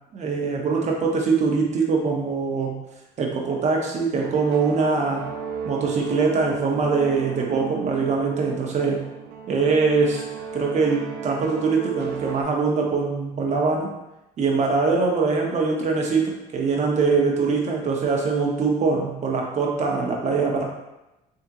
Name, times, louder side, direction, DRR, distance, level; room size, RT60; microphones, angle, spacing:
voice 1, 0.1-2.7 3.2-5.3 5.7-9.0 9.5-10.2 10.5-13.9 14.4-20.6, right 4 dB, 45° right, 0 dB, 0.9 m, -23 dB
sound 1, 4.2-12.4, right 7 dB, 75° right, 0.4 m, -34 dB
3.6 x 3.4 x 2.9 m, 0.96 s
cardioid pair, 110°, 17 cm